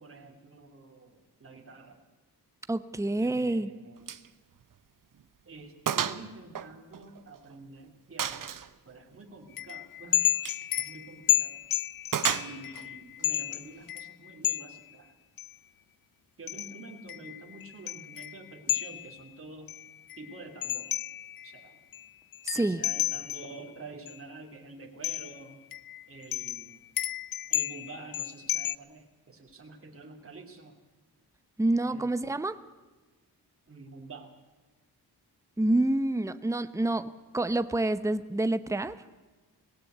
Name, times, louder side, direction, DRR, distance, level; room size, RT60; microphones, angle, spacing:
voice 1, 0.0-2.0 3.2-4.2 5.4-8.4 8.8-10.3 10.8-11.6 12.2-15.1 16.4-19.7 20.2-20.9 21.4-21.8 22.5-25.6 26.1-26.8 27.5-30.8 31.8-32.5 33.7-34.3, right 3 dB, 35° right, 2 dB, 3.0 m, -48 dB
voice 2, 2.7-3.7 22.4-22.8 31.6-32.6 35.6-39.0, right 2 dB, 10° right, 12 dB, 0.9 m, -27 dB
Gunshot gunfire, 4.1-4.3 4.6-4.7 5.2-5.3 5.9-6.2 6.5-7.5 8.2-8.7 10.3-10.6 12.1-12.9, right 8 dB, 55° right, 1.0 m, -31 dB
sound 1, 9.6-14.8 15.4-15.5 16.5-19.2 19.7-21.6 21.9-22.1 22.3-23.6 24.1-24.2 25.0-25.4 25.7-28.8, left 11 dB, 60° left, 0.6 m, -31 dB
19.0 x 17.0 x 8.1 m, 1.2 s
cardioid pair, 80°, 40 cm